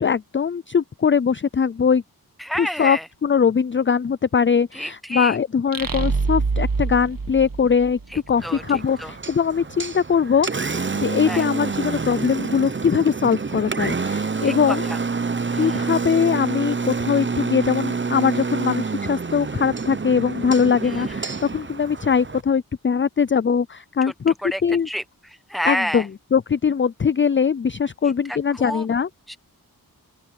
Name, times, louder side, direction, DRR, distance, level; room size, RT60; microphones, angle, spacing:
voice 1, 0.0-2.0 2.6-8.0 8.3-10.5 11.0-14.9 15.5-24.3 24.6-24.9 25.7-29.1, left 6 dB, 35° left, 0.4 m, -21 dB
voice 2, 2.4-3.1 4.7-5.4 8.1-9.1 11.3-11.4 14.4-15.0 15.5-15.8 20.8-21.2 24.4-24.6 24.9-26.1 28.0-28.8 29.3-29.4, equal, ahead, 1.3 m, -30 dB
sound 1, 5.7-8.4, right 4 dB, 65° right, 1.8 m, -25 dB
Engine, 8.4-22.4, right 4 dB, 30° right, 0.7 m, -28 dB
open air
wide cardioid pair, 50°, 37 cm